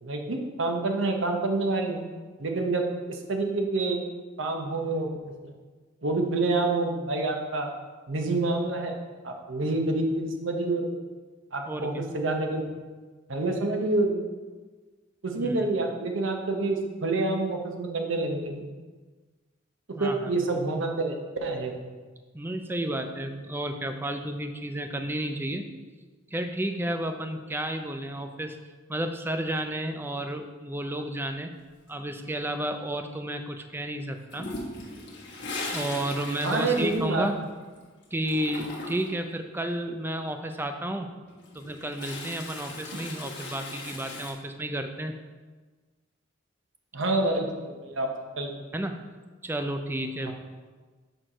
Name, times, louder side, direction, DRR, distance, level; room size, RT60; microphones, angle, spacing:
voice 1, 0.0-2.0 2.4-4.0 4.4-5.1 5.4-5.5 6.0-7.7 8.1-8.9 9.2-10.8 11.5-12.6 13.3-14.2 15.2-18.6 20.0-21.7 36.4-37.3 42.9-43.0 46.9-48.6 50.2-50.3, right 2 dB, 75° right, 3 dB, 0.9 m, -27 dB
voice 2, 11.7-12.1 15.4-15.5 19.9-20.3 22.3-25.7 26.3-28.6 28.9-31.5 31.9-34.5 35.7-37.4 38.1-41.1 41.5-45.1 48.7-49.0 49.4-50.3, right 1 dB, 10° right, 6 dB, 0.4 m, -32 dB
Toilet flush, 34.3-37.8 38.0-39.2 41.3-44.3, left 2 dB, 60° left, 1.4 m, -38 dB
6.4 x 4.6 x 5.0 m, 1.4 s
head